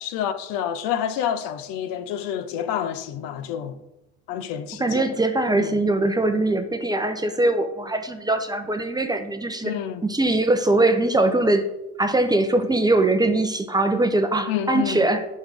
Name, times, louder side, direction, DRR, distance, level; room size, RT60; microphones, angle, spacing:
voice 1, 0.0-3.8 4.3-5.1 5.5-5.7 9.6-10.0 14.5-15.1, left 9 dB, 75° left, 0.7 m, -28 dB
voice 2, 4.8-9.7 10.0-11.6 12.0-15.2, right 2 dB, 10° right, 0.6 m, -21 dB
7.9 x 5.3 x 3.5 m
supercardioid pair, 105°, 35 cm